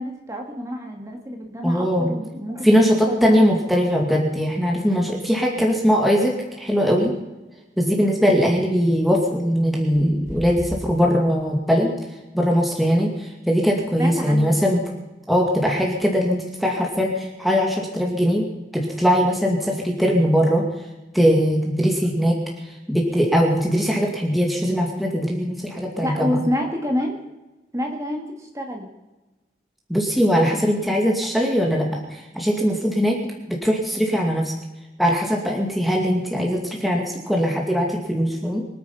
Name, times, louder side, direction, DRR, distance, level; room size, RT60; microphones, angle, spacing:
voice 1, 0.0-3.5 14.0-14.6 26.0-27.2 27.7-28.9, equal, 20° right, 2 dB, 2.3 m, -28 dB
voice 2, 1.6-2.1 2.6-7.1 7.8-11.9 12.3-14.8 15.3-18.5 18.7-20.7 21.1-26.4 29.9-33.2 33.6-34.5 35.0-38.6, equal, ahead, -1 dB, 2.3 m, -20 dB
sound 1, 6.7-6.8 8.6-8.7 9.8-11.6, equal, 45° right, 3.8 m, -35 dB
24.0 x 9.6 x 5.8 m, 1.1 s
head